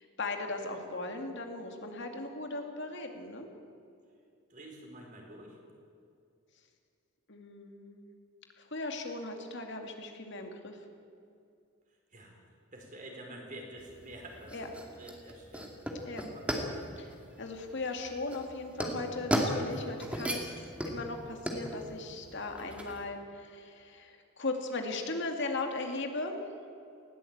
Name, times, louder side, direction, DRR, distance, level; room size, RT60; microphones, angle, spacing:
voice 1, 0.0-3.5 7.3-8.1 8.6-10.8 14.5-14.7 16.1-16.2 17.0-20.5 20.8-26.4, left 2 dB, 55° left, 4 dB, 2.3 m, -38 dB
voice 2, 4.5-5.6 12.1-12.3 12.7-14.7 14.9-15.7 16.3-16.4, right 1 dB, 40° right, 1 dB, 4.6 m, -47 dB
sound 1, 13.8-23.0, equal, 5° right, 2.2 m, -36 dB
19.5 x 16.0 x 8.7 m, 2.4 s
head